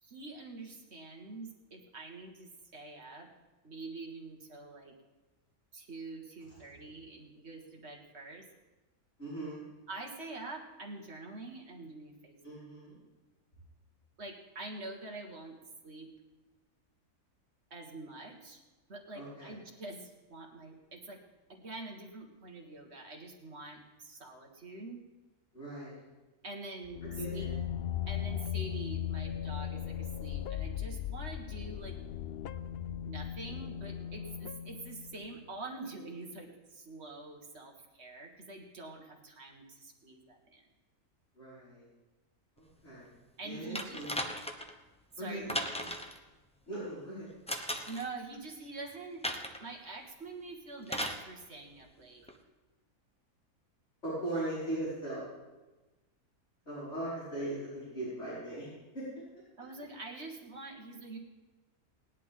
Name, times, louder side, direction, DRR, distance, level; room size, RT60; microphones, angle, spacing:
voice 1, 0.0-3.3 3.6-5.0 5.7-8.5 9.9-12.4 14.2-15.6 15.8-16.1 17.7-18.6 18.9-21.2 21.5-25.0 26.4-27.5 28.1-32.0 33.1-40.6 43.4-44.0 45.2-45.9 47.9-49.2 49.6-52.3 59.6-61.2, right 3 dB, 45° right, 0 dB, 1.9 m, -45 dB
voice 2, 9.2-9.6 12.4-13.0 19.1-19.6 25.5-26.0 27.2-27.5 41.3-41.9 42.6-43.2 43.4-44.2 45.2-45.5 46.7-47.3 54.0-55.2 56.7-57.6 57.9-58.7 58.9-59.0, right 1 dB, 45° left, -11 dB, 5.8 m, -39 dB
sound 1, 26.8-35.4, left 10 dB, 80° left, 0.5 m, -38 dB
sound 2, 43.8-44.7 45.5-46.2 47.5-48.1 49.2-49.6 50.9-51.2 52.3-52.4, equal, 5° left, 0.7 m, -36 dB
19.5 x 10.5 x 3.7 m, 1.2 s
omnidirectional pair, 1.6 m